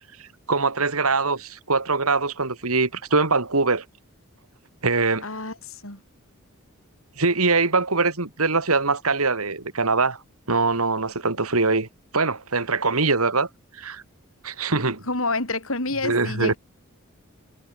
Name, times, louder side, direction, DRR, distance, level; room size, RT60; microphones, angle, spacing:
voice 1, 0.2-3.8 4.8-5.2 7.2-10.2 10.5-11.9 12.1-13.5 13.8-14.0 14.4-15.0 16.0-16.5, right 3 dB, 85° right, 2.6 m, -23 dB
voice 2, 5.2-6.0 15.0-16.6, left 2 dB, 70° left, 6.9 m, -28 dB
head